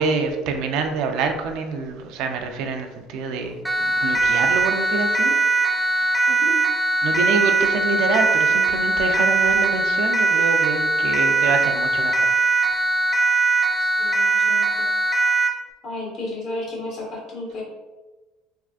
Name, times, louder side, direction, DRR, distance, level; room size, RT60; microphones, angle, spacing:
voice 1, 0.0-5.3 5.7-6.2 7.0-12.3, right 4 dB, 70° right, 5 dB, 0.4 m, -26 dB
Siren, 3.7-15.6, right 3 dB, 5° right, 0.4 m, -20 dB
voice 2, 13.8-14.9 15.8-17.6, left 2 dB, 55° left, -3 dB, 1.3 m, -33 dB
3.5 x 2.4 x 2.4 m, 1.2 s
supercardioid pair, 95°, 0 cm